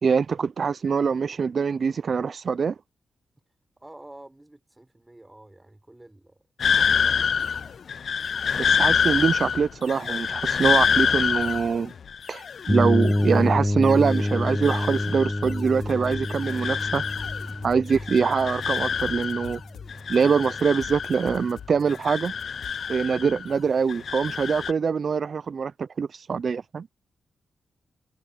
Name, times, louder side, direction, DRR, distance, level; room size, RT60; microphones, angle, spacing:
voice 1, 0.0-2.7 8.6-11.9 12.3-17.0 17.6-19.6 20.1-22.3 22.9-26.9, right 6 dB, 60° right, 0.5 m, -24 dB
voice 2, 3.8-7.8, right 1 dB, 15° right, 4.0 m, -49 dB
sound 1, 6.6-13.6 13.9-15.6 15.9-17.6 17.9-19.6 19.9-21.6 21.9-23.6 23.9-24.7, left 6 dB, 65° left, 0.3 m, -27 dB
sound 2, 12.7-20.4, left 1 dB, 10° left, 0.9 m, -27 dB
sound 3, 15.4-22.7, left 8 dB, 85° left, 3.6 m, -45 dB
cardioid pair, 70°, 0 cm